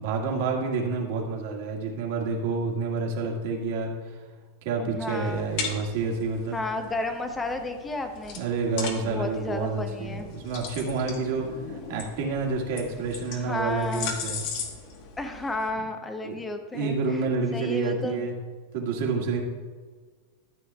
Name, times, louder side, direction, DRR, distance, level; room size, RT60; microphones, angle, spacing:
voice 1, 0.0-4.2 4.6-6.6 8.3-14.4 16.2-16.4 16.7-18.3 18.7-19.4, right 4 dB, 50° right, -1 dB, 1.8 m, -29 dB
voice 2, 4.8-5.5 6.5-8.4 8.8-10.3 13.3-14.1 15.2-17.3 17.5-18.3, left 2 dB, 10° left, 6 dB, 0.7 m, -32 dB
sound 1, 5.1-15.7, left 5 dB, 45° left, 1.2 m, -38 dB
13.5 x 8.1 x 2.3 m, 1.4 s
supercardioid pair, 175°, 0 cm